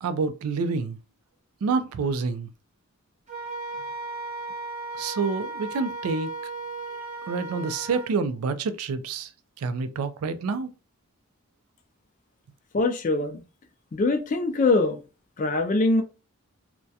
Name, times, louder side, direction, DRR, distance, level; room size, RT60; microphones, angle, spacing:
voice 1, 0.0-1.0 1.6-2.5 4.9-6.3 7.3-9.3 9.6-10.7, right 4 dB, 90° right, 0.4 m, -28 dB
Wind instrument woodwind instrument, 3.3-8.1, right 2 dB, 30° right, 0.6 m, -35 dB
voice 2, 12.7-13.4 13.9-15.0 15.4-16.0, left 2 dB, 35° left, 0.3 m, -23 dB
2.3 x 2.1 x 2.7 m
head